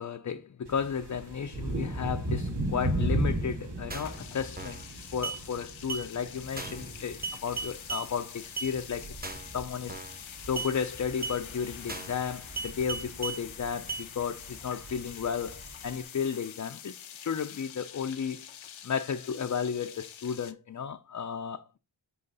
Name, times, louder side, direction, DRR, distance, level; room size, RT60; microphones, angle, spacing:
voice 1, 0.0-4.8 5.1-9.2 9.5-10.0 10.4-18.5 18.8-21.8, left 7 dB, 40° left, 0.5 m, -33 dB
sound 1, 0.7-16.0, right 1 dB, 60° right, 2.2 m, -37 dB
sound 2, 3.9-4.2 4.6-4.9 5.2-5.4 5.9-6.1 6.6-6.9 7.2-8.1 8.6-8.7 9.2-9.5 9.9-10.2 10.6-10.7 11.2-11.4 11.9-12.2 12.6-13.4 13.9-14.1, right 4 dB, 20° right, 1.0 m, -36 dB
sound 3, 4.0-20.5, left 9 dB, 90° left, 0.7 m, -46 dB
8.0 x 3.1 x 5.3 m
wide cardioid pair, 75°, 46 cm